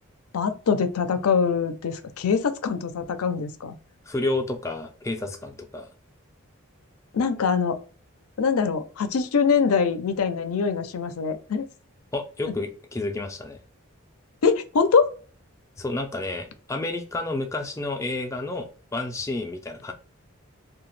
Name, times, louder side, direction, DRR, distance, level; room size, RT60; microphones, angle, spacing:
voice 1, 0.3-3.8 7.1-7.8 8.4-11.7 14.4-15.1, left 5 dB, 80° left, 0.5 m, -23 dB
voice 2, 4.1-5.9 12.1-13.6 15.8-19.9, left 2 dB, 15° left, 0.3 m, -30 dB
2.8 x 2.2 x 3.1 m
head